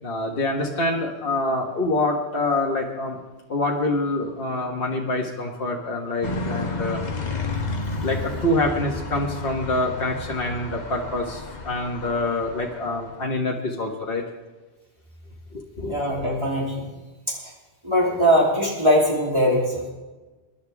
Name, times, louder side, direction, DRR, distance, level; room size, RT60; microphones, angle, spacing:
voice 1, 0.0-3.2 3.5-7.0 8.0-14.2 15.5-15.9, left 2 dB, 60° left, -1 dB, 1.7 m, -26 dB
sound 1, 6.2-13.2, left 3 dB, 40° left, 1.2 m, -32 dB
voice 2, 15.8-16.9 17.3-17.4 17.8-19.9, equal, 25° right, -4 dB, 3.4 m, -21 dB
23.5 x 11.5 x 3.5 m, 1.2 s
omnidirectional pair, 1.1 m